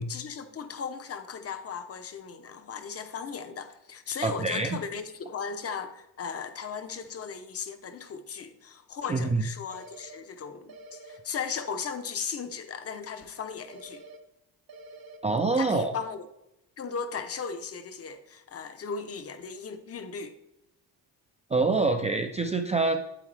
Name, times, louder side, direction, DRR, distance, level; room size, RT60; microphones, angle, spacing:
voice 1, 0.0-14.0 15.6-16.3 16.8-20.4, left 6 dB, 35° left, 0.7 m, -37 dB
voice 2, 4.2-4.8 9.1-9.4 15.2-15.9 21.5-23.0, right 3 dB, 15° right, 0.3 m, -25 dB
sound 1, 9.7-10.2 10.7-11.2 13.7-14.2 14.7-15.2, right 2 dB, 55° right, 1.0 m, -47 dB
9.0 x 8.1 x 3.2 m
cardioid pair, 170°, 41 cm